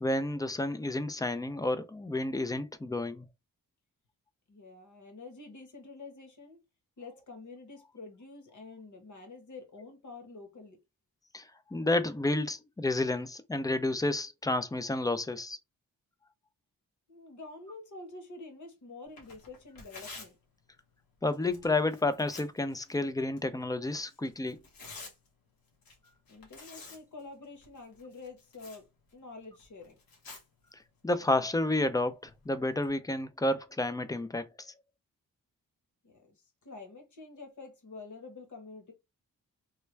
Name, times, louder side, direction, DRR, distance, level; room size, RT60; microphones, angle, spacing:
voice 1, 0.0-3.3 11.3-15.6 21.2-24.6 31.0-34.7, left 2 dB, 10° left, 0.4 m, -30 dB
voice 2, 4.5-6.6 7.0-10.8 17.1-20.4 26.3-28.9 29.1-30.0 36.0-38.9, left 3 dB, 55° left, 1.2 m, -48 dB
Tearing, 19.1-32.9, left 3 dB, 80° left, 1.2 m, -53 dB
3.3 x 2.2 x 3.1 m
cardioid pair, 90°, 35 cm